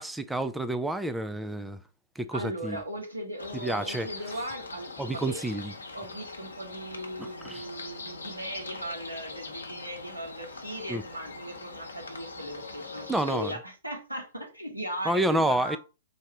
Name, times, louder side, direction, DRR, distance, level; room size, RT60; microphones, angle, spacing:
voice 1, 0.0-1.8 2.2-2.8 3.6-4.1 5.0-5.7 7.2-7.6 10.9-11.0 13.1-13.5 15.0-15.8, right 1 dB, 5° right, 0.4 m, -29 dB
voice 2, 2.3-5.4 5.9-15.8, equal, 85° right, 1.4 m, -38 dB
sound 1, 3.4-13.5, left 3 dB, 70° left, 0.9 m, -42 dB
3.9 x 2.6 x 4.6 m
figure-of-eight pair, 110°, 0 cm